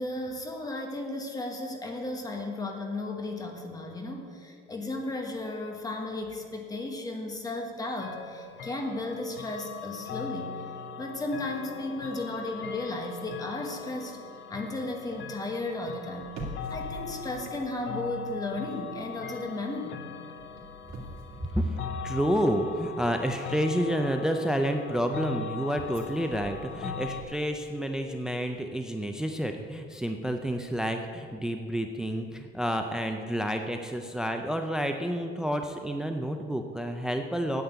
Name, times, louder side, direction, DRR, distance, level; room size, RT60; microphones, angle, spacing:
voice 1, 0.0-10.6 11.0-14.2 14.5-16.4 16.7-20.1, left 2 dB, 15° left, 3 dB, 1.3 m, -34 dB
sound 1, 8.0-27.2, left 6 dB, 60° left, 1.0 m, -40 dB
sound 2, 16.2-18.5 18.8-19.1 20.4-22.6 25.8-27.7 28.0-28.1, right 1 dB, 90° right, 2.5 m, -45 dB
voice 2, 22.0-37.6, equal, 5° right, 5 dB, 0.4 m, -29 dB
9.5 x 8.4 x 8.0 m, 2.3 s
cardioid pair, 160°, 21 cm